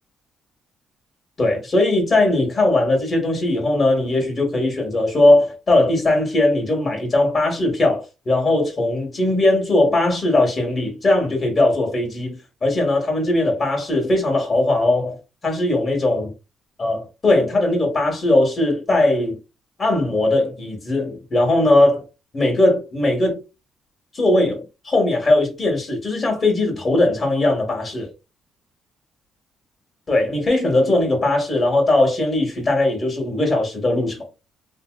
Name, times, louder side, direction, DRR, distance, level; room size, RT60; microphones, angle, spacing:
voice 1, 1.4-12.3 12.6-15.2 15.4-16.3 16.8-19.4 19.8-22.1 22.3-23.4 24.1-28.1 30.1-34.2, left 2 dB, 35° left, 1.8 m, -19 dB
3.4 x 2.7 x 2.4 m
cardioid pair, 90°, 0 cm